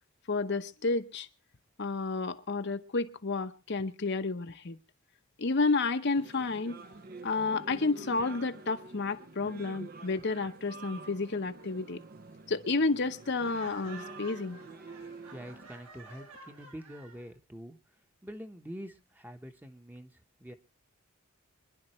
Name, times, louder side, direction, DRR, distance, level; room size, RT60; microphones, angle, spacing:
voice 1, 0.3-1.3 1.8-4.8 5.4-6.8 7.2-12.0 12.5-14.6, left 3 dB, 50° left, 0.8 m, -31 dB
sound 1, 6.1-15.7, right 3 dB, 40° right, 0.7 m, -48 dB
Laughter, 13.2-17.3, right 3 dB, 85° right, 5.8 m, -51 dB
voice 2, 15.3-17.8 18.2-20.1 20.4-20.5, equal, 10° right, 1.0 m, -45 dB
26.5 x 11.0 x 3.1 m
head